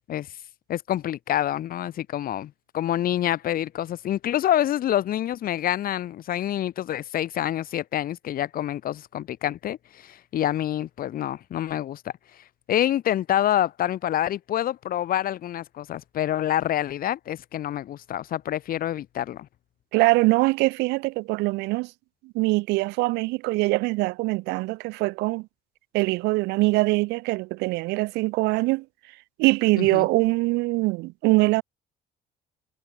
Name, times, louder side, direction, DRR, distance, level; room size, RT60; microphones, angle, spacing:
voice 1, 0.7-12.0 12.7-19.5 29.8-30.1, left 12 dB, 60° left, 1.6 m, -27 dB
voice 2, 19.9-21.9 22.3-25.5 25.9-28.8 29.4-31.6, right 23 dB, 90° right, 0.4 m, -23 dB
cardioid pair, 110°, 17 cm